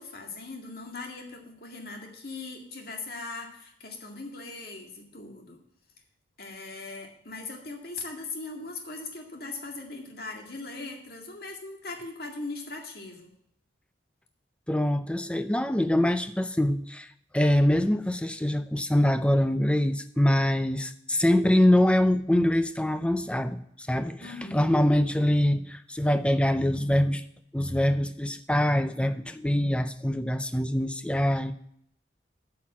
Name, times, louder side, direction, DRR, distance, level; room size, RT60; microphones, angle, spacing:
voice 1, 0.0-5.6 6.4-13.3 24.2-24.7, left 3 dB, 55° left, 2.0 m, -40 dB
voice 2, 14.7-27.3 27.5-31.5, left 1 dB, 5° left, 0.4 m, -24 dB
9.1 x 5.8 x 7.3 m
head